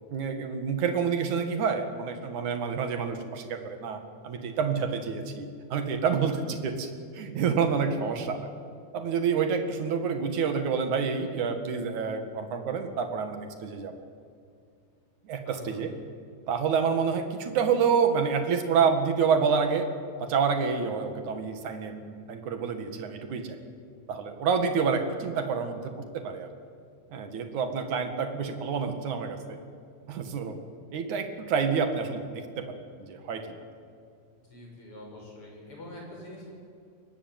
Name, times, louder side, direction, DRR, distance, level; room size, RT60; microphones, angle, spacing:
voice 1, 0.1-4.0 4.2-8.5 8.9-13.9 15.2-15.9 16.5-19.9 20.2-23.6 24.1-26.5 27.1-29.6 30.1-30.6 30.9-33.5, right 6 dB, 55° right, 6 dB, 2.8 m, -28 dB
voice 2, 15.5-15.9 34.5-36.5, left 1 dB, 30° left, -1 dB, 7.1 m, -45 dB
23.5 x 19.5 x 9.2 m, 2.3 s
omnidirectional pair, 5.0 m